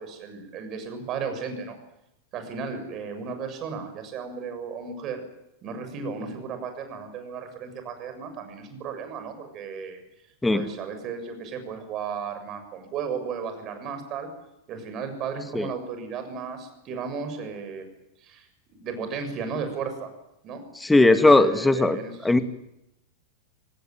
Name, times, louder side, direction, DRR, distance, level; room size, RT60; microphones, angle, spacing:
voice 1, 0.0-1.8 2.3-5.2 5.6-10.0 10.5-14.3 14.7-17.9 18.2-18.5 18.7-20.1 20.4-20.6 21.1-22.4, right 6 dB, 35° right, 7 dB, 7.1 m, -34 dB
voice 2, 20.9-22.0 22.2-22.4, left 2 dB, 5° left, 10 dB, 2.1 m, -18 dB
26.0 x 19.0 x 9.4 m, 0.85 s
figure-of-eight pair, 90°, 0 cm